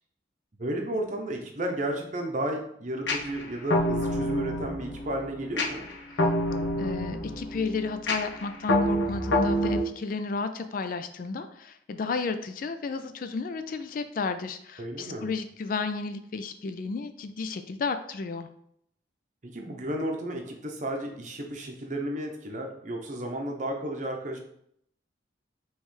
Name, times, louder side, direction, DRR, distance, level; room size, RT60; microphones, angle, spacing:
voice 1, 0.6-5.8 14.8-15.3 19.4-24.4, right 1 dB, 40° right, 2 dB, 0.7 m, -33 dB
sound 1, 3.1-9.8, left 1 dB, 75° left, 0.8 m, -27 dB
voice 2, 6.8-18.5, left 4 dB, 50° left, 9 dB, 0.3 m, -33 dB
5.3 x 3.1 x 3.2 m, 0.70 s
head